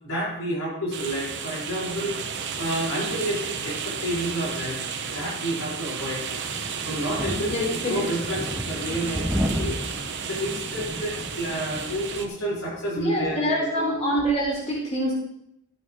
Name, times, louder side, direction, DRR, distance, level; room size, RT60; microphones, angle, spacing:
voice 1, 0.0-2.2 2.6-4.8 5.1-6.3 6.8-9.8 10.2-13.9, equal, 90° left, -5 dB, 4.3 m, -30 dB
sound 1, 0.9-12.3, right 6 dB, 55° right, 1.1 m, -33 dB
sound 2, 6.0-13.5, equal, 5° right, 1.1 m, -34 dB
voice 2, 7.4-8.0 12.9-15.1, equal, 30° left, -4 dB, 3.8 m, -26 dB
13.0 x 8.7 x 3.7 m, 0.77 s
head